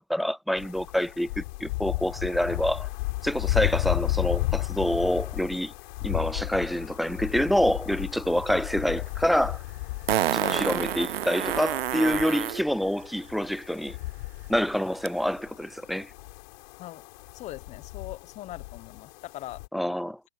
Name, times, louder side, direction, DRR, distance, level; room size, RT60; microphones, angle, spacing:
voice 1, 0.0-2.9 3.2-5.7 6.0-9.6 10.3-14.0 14.5-16.1 19.7-20.2, equal, ahead, 0.6 m, -27 dB
sound 1, 0.6-19.7, left 22 dB, 40° left, 4.8 m, -34 dB
Fart, 9.0-9.1 10.1-12.6 15.1-15.2, right 12 dB, 55° right, 0.7 m, -28 dB
voice 2, 10.3-10.8 16.8-17.0 17.3-19.6, left 15 dB, 20° left, 1.0 m, -40 dB
hypercardioid pair, 135°, 35 cm